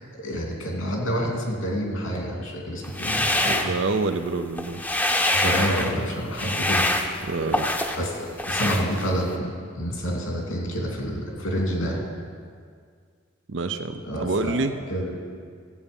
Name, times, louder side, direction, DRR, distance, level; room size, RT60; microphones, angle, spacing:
voice 1, 0.0-3.7 5.3-6.9 8.0-12.0 14.0-14.5 14.9-15.2, equal, 90° left, 0 dB, 2.7 m, -28 dB
sound 1, 2.8-4.2 4.5-6.0 6.3-8.1 8.4-9.3, left 1 dB, 10° left, 0.7 m, -25 dB
voice 2, 3.5-4.8 7.2-7.7 13.5-14.7, right 3 dB, 65° right, 8 dB, 0.5 m, -27 dB
15.0 x 8.2 x 5.3 m, 2.1 s
head